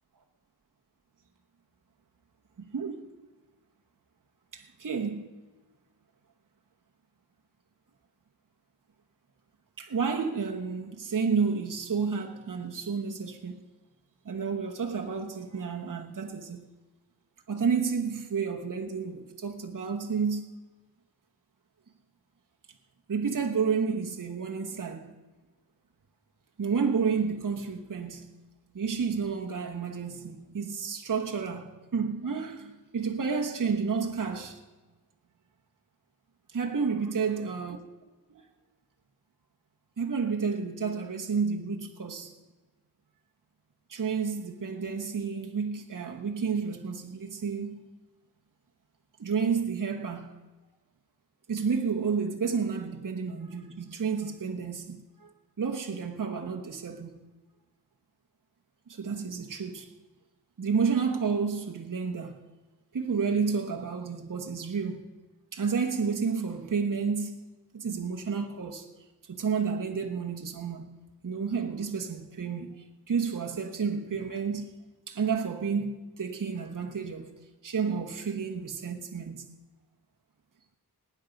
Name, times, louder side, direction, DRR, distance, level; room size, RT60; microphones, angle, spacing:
voice 1, 2.6-3.0 4.5-5.3 9.8-13.6 14.2-16.7 17.5-20.4 23.1-25.2 26.6-28.4 28.7-34.6 36.5-37.8 38.3-38.4 40.0-42.3 43.9-47.8 49.2-50.4 51.5-55.3 55.6-57.2 58.9-59.9 60.6-62.4 62.9-65.1 65.5-67.3 67.7-68.9 69.2-70.9 71.2-74.7 75.1-77.3 77.6-79.4, right 5 dB, 55° right, 1.2 m, -31 dB
19.0 x 9.5 x 5.2 m
wide cardioid pair, 105°, 39 cm